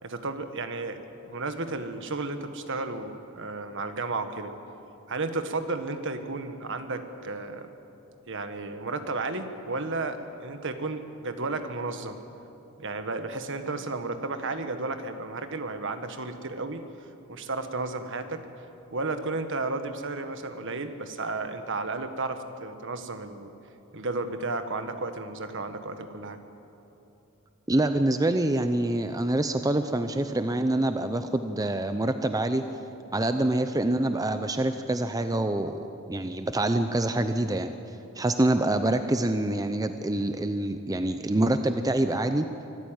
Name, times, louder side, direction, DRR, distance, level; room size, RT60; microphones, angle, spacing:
voice 1, 0.0-1.0 1.2-4.5 5.1-7.7 8.3-12.2 12.8-16.8 17.3-18.4 18.9-23.5 23.9-26.4, right 3 dB, 60° right, 8 dB, 1.5 m, -33 dB
voice 2, 27.7-32.6 33.1-37.8 38.2-42.5, right 1 dB, 15° right, 8 dB, 0.6 m, -26 dB
25.0 x 14.0 x 8.9 m, 2.9 s
head